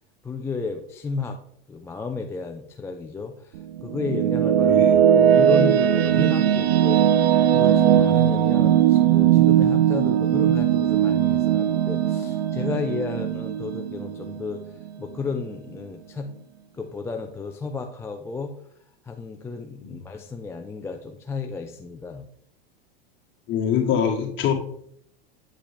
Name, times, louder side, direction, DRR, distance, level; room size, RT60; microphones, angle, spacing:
voice 1, 0.2-1.4 1.7-4.8 5.1-7.0 7.4-16.3 16.7-18.5 19.0-22.3, left 4 dB, 10° left, 4 dB, 0.4 m, -33 dB
sound 1, 3.6-14.9, right 10 dB, 80° right, 0.8 m, -19 dB
voice 2, 23.5-24.5, left 8 dB, 40° left, 0 dB, 2.0 m, -24 dB
8.5 x 5.0 x 3.3 m, 0.67 s
supercardioid pair, 120°, 30 cm